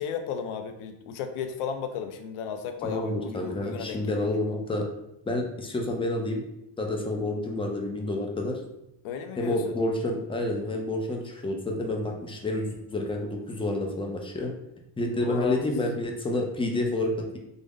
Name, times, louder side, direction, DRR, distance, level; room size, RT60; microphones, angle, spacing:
voice 1, 0.0-4.2 9.0-9.8 15.2-15.6, left 7 dB, 85° left, 6 dB, 0.6 m, -34 dB
voice 2, 2.8-4.9 5.3-6.4 6.8-8.6 9.4-14.5 15.0-17.4, left 1 dB, 10° left, 2 dB, 0.4 m, -29 dB
3.5 x 2.0 x 3.5 m, 0.83 s
cardioid pair, 115°, 49 cm